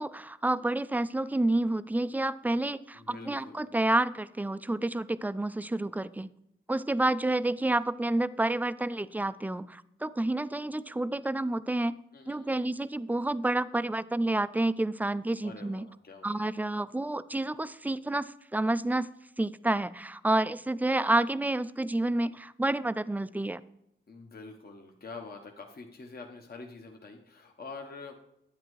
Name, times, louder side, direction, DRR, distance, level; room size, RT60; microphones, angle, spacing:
voice 1, 0.0-6.3 6.7-12.0 12.3-15.8 16.2-19.1 19.4-23.6, right 2 dB, 10° right, 16 dB, 0.3 m, -29 dB
voice 2, 2.9-3.8 12.1-12.6 15.4-16.4 24.1-28.1, left 4 dB, 50° left, 2 dB, 1.0 m, -46 dB
10.0 x 8.6 x 3.1 m, 0.80 s
cardioid pair, 65°, 20 cm